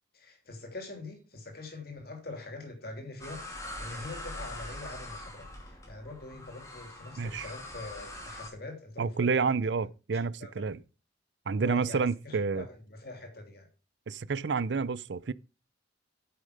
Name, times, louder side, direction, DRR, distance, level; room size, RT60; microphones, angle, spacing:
voice 1, 0.1-9.5 10.1-10.5 11.6-13.7, left 2 dB, 50° left, 3.0 m, -44 dB
sound 1, 3.2-8.5, left 1 dB, 15° left, 2.6 m, -43 dB
voice 2, 7.2-7.5 9.0-10.8 11.5-12.7 14.1-15.3, right 5 dB, 65° right, 0.5 m, -29 dB
9.4 x 6.7 x 5.1 m
head